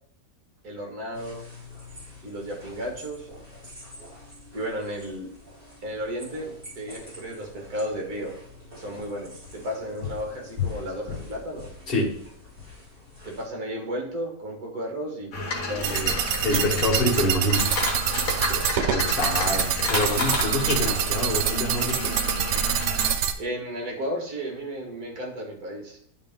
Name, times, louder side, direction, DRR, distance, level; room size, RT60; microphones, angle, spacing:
voice 1, 0.6-1.4 2.2-3.3 4.5-5.3 5.8-8.4 8.7-11.7 13.2-15.4 15.7-16.2 18.4-18.7 23.4-26.0, equal, 60° right, 0 dB, 2.1 m, -33 dB
sound 1, 1.1-13.4, left 6 dB, 30° right, 3.1 m, -41 dB
sound 2, 15.3-23.1, left 2 dB, 55° left, 1.6 m, -30 dB
sound 3, 15.8-23.3, right 8 dB, 85° right, 1.2 m, -26 dB
voice 2, 16.4-17.7 18.9-22.1, left 1 dB, 30° left, -5 dB, 1.9 m, -26 dB
9.7 x 3.8 x 3.7 m, 0.64 s
omnidirectional pair, 1.9 m